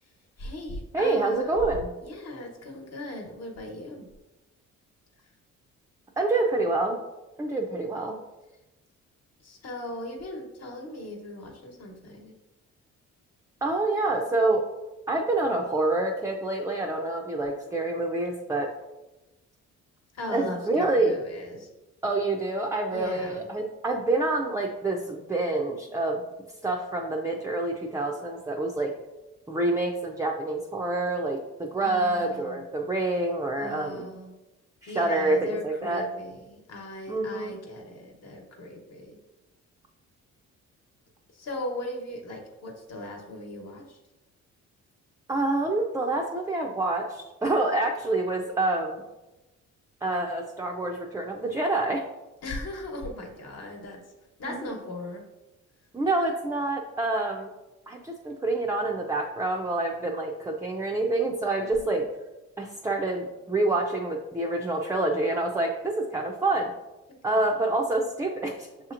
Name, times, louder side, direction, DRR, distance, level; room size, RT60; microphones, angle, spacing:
voice 1, 0.4-1.5 2.0-4.1 9.4-12.3 20.1-21.7 22.9-23.5 31.8-32.6 33.6-34.3 34.9-39.2 41.3-44.0 52.4-54.0 54.4-55.2 61.8-62.1 67.3-67.5, left 1 dB, 55° left, 2 dB, 1.1 m, -38 dB
voice 2, 0.9-1.9 6.2-7.0 7.4-8.2 13.6-14.6 15.1-18.7 20.3-21.2 22.0-26.2 26.6-28.9 29.5-34.1 34.8-36.1 37.1-37.6 45.3-49.0 50.0-52.0 54.4-54.7 55.9-57.5 57.9-62.0 62.6-66.7 67.2-68.7, right 2 dB, 10° right, 0 dB, 0.4 m, -27 dB
6.4 x 2.9 x 2.5 m, 1.0 s
cardioid pair, 90°, 30 cm